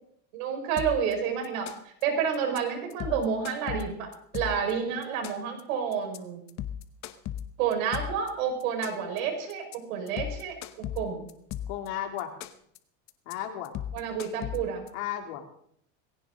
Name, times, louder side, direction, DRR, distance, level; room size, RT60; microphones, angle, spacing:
voice 1, 0.3-6.4 7.6-10.6 11.0-11.3 13.9-14.9, right 7 dB, 80° right, 3 dB, 5.5 m, -30 dB
sound 1, 0.8-1.1 1.4-2.0 2.3-2.6 2.9-4.7 5.0-5.6 5.9-6.2 6.5-8.3 8.6-9.2 9.5-9.8 10.1-11.9 12.2-12.8 13.1-13.3 13.6-14.9, left 10 dB, 40° left, 1.1 m, -36 dB
voice 2, 11.7-12.3 13.3-13.7 14.9-15.7, left 11 dB, 70° left, 3 dB, 3.3 m, -34 dB
19.0 x 17.0 x 3.9 m, 0.66 s
supercardioid pair, 145°, 41 cm